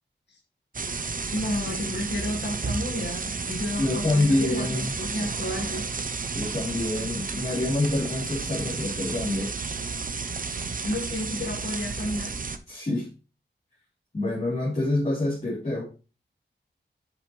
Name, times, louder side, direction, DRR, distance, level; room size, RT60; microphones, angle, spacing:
sound 1, 0.7-12.6, right 4 dB, 45° right, 0.7 m, -32 dB
voice 1, 1.3-5.8 10.8-12.3, left 1 dB, 65° left, 1 dB, 1.6 m, -32 dB
voice 2, 3.8-4.9 6.3-9.5 12.7-13.1 14.1-15.8, left 2 dB, 35° left, -8 dB, 3.2 m, -26 dB
7.7 x 6.6 x 3.1 m, 0.33 s
wide cardioid pair, 75°, 19 cm